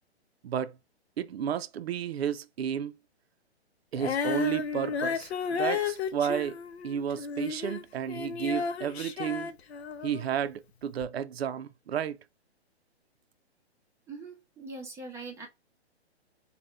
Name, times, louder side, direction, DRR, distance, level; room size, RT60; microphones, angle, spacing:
voice 1, 0.4-0.8 1.2-2.9 3.9-6.6 6.8-9.5 10.0-12.2, right 8 dB, 65° right, 0.6 m, -32 dB
Female singing, 3.9-10.3 11.0-11.1, left 6 dB, 70° left, 0.7 m, -33 dB
voice 2, 14.1-15.5, right 3 dB, 10° right, 0.6 m, -42 dB
4.1 x 2.3 x 3.4 m
hypercardioid pair, 135°, 33 cm